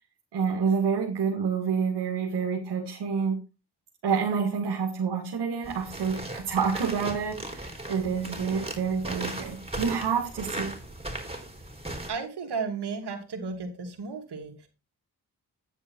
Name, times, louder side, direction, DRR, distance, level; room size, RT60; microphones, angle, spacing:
voice 1, 0.3-3.4 4.0-10.8, right 6 dB, 90° right, -1 dB, 2.0 m, -28 dB
sound 1, 5.6-12.1, right 1 dB, 15° right, 4.1 m, -37 dB
voice 2, 12.1-14.7, right 4 dB, 75° right, 3 dB, 2.6 m, -34 dB
9.9 x 7.2 x 4.4 m, 0.28 s
cardioid pair, 50°, 41 cm